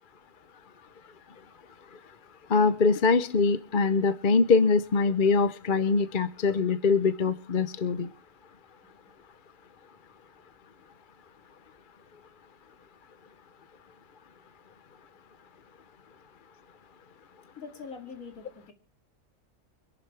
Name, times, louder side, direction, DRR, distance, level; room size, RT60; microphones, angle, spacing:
voice 1, 2.5-8.1, left 4 dB, 45° left, 13 dB, 0.8 m, -23 dB
voice 2, 17.6-18.7, left 5 dB, 85° left, 6 dB, 3.0 m, -43 dB
25.0 x 11.5 x 3.3 m, 0.36 s
omnidirectional pair, 1.4 m